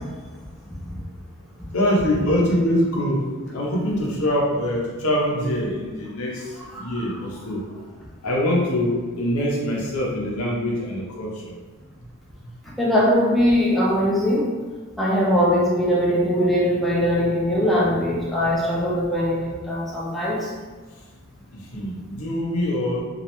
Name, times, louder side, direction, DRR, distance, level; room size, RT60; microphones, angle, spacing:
voice 1, 1.7-7.6 8.2-11.6 21.5-23.0, left 1 dB, 80° left, -3 dB, 0.6 m, -24 dB
voice 2, 12.8-14.5 15.0-20.5, equal, ahead, -6 dB, 0.4 m, -21 dB
2.4 x 2.1 x 2.9 m, 1.4 s
head